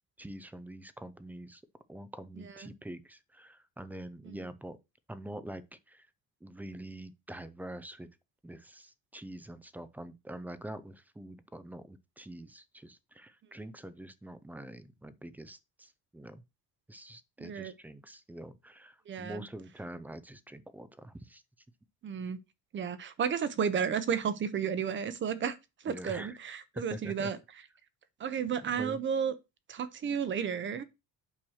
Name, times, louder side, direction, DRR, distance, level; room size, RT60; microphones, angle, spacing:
voice 1, 0.2-1.6 1.9-4.8 5.1-6.1 6.4-8.1 8.4-16.4 16.9-21.4 25.9-26.4 26.9-27.3 28.8-29.0, right 1 dB, 5° right, 0.4 m, -45 dB
voice 2, 17.4-17.7 19.1-19.4 22.0-22.4 22.7-25.6 25.8-27.4 28.2-29.3 29.7-30.8, right 7 dB, 35° right, 0.8 m, -32 dB
8.7 x 2.9 x 6.3 m
cardioid pair, 170°, 34 cm